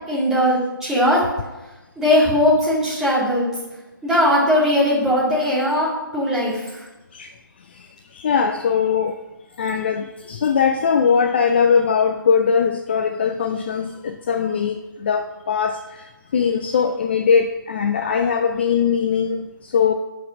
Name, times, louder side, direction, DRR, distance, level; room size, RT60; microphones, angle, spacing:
voice 1, 0.1-1.2 2.0-3.5 4.0-6.6, left 1 dB, 5° right, -8 dB, 2.3 m, -19 dB
voice 2, 8.1-9.1 9.6-16.0 16.3-19.9, left 6 dB, 30° left, 6 dB, 0.4 m, -20 dB
12.5 x 5.3 x 5.9 m, 1.1 s
figure-of-eight pair, 155°, 12 cm